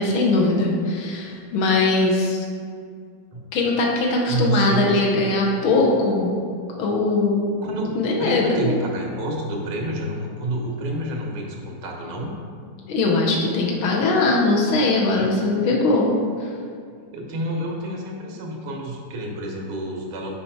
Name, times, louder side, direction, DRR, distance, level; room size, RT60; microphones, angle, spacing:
voice 1, 0.0-2.5 3.5-6.3 6.8-7.5 7.9-8.8 12.9-16.5, left 2 dB, 90° left, -2 dB, 1.7 m, -20 dB
voice 2, 4.3-5.1 7.6-12.3 17.1-20.4, right 1 dB, 85° right, 0 dB, 1.9 m, -28 dB
6.7 x 4.2 x 4.5 m, 2.2 s
omnidirectional pair, 2.2 m